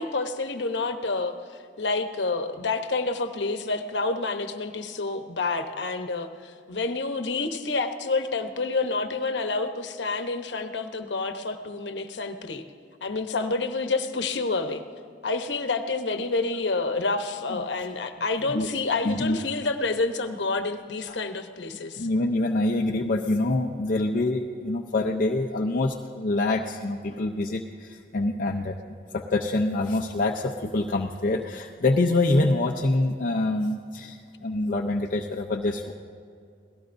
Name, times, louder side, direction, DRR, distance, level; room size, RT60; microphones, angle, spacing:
voice 1, 0.0-1.3 1.8-12.6 13.0-14.8 15.2-22.1, left 3 dB, 80° left, 7 dB, 1.0 m, -28 dB
voice 2, 19.0-19.4 21.1-21.2 21.9-28.8 29.1-35.9, left 2 dB, 50° left, 1 dB, 0.6 m, -25 dB
27.0 x 17.5 x 2.6 m, 2.3 s
head